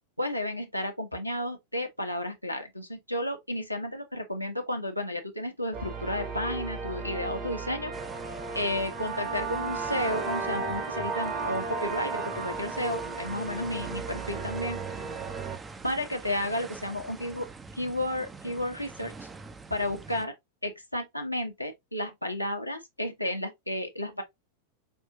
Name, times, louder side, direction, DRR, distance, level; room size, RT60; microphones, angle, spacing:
voice 1, 0.2-7.9 8.5-14.8 15.8-17.5 17.8-19.3 19.7-20.3 20.6-24.2, left 1 dB, 90° left, 0.9 m, -32 dB
sound 1, 5.7-15.6, right 4 dB, 35° right, 1.2 m, -34 dB
sound 2, 7.9-20.2, right 4 dB, 15° right, 0.5 m, -45 dB
5.4 x 2.5 x 2.6 m
figure-of-eight pair, 90°, 0 cm